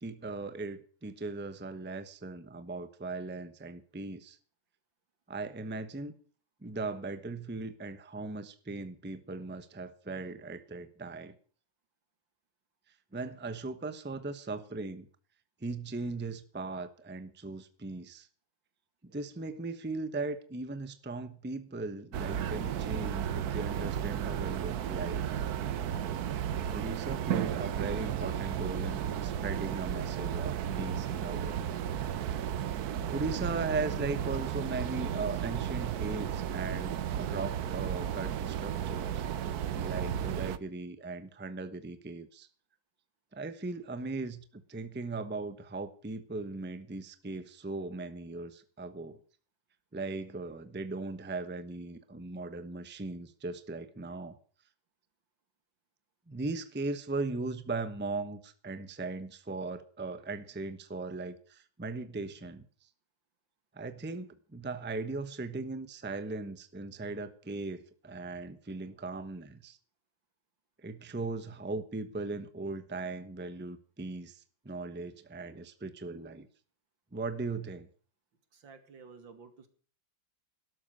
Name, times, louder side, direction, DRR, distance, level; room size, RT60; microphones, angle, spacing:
voice 1, 0.0-4.4 5.3-6.2 6.6-11.3 13.1-15.1 15.6-18.3 19.1-25.3 26.7-31.7 33.1-39.2 39.8-42.5 43.3-49.2 49.9-54.4 56.3-62.7 63.7-69.8 70.8-76.5 77.1-77.9, right 3 dB, 10° right, 11 dB, 0.7 m, -38 dB
sound 1, 22.1-40.6, right 9 dB, 60° right, 1.2 m, -34 dB
voice 2, 78.5-79.7, right 5 dB, 80° right, 9 dB, 2.9 m, -53 dB
12.5 x 12.5 x 6.4 m, 0.42 s
omnidirectional pair, 2.0 m